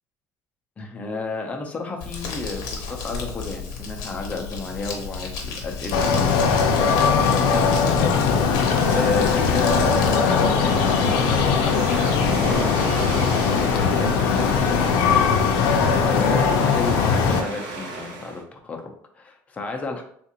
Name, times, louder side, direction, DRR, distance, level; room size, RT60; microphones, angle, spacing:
voice 1, 0.8-8.1 8.9-13.5 13.7-20.0, left 3 dB, 20° left, 2 dB, 0.5 m, -33 dB
Crumpling crinkling, 2.0-10.2, left 5 dB, 60° left, 0.9 m, -33 dB
sound 1, 5.9-17.4, left 5 dB, 80° left, 0.5 m, -20 dB
sound 2, 8.4-18.4, right 3 dB, 80° right, 0.8 m, -34 dB
3.6 x 2.5 x 2.8 m, 0.63 s
cardioid pair, 160°, 7 cm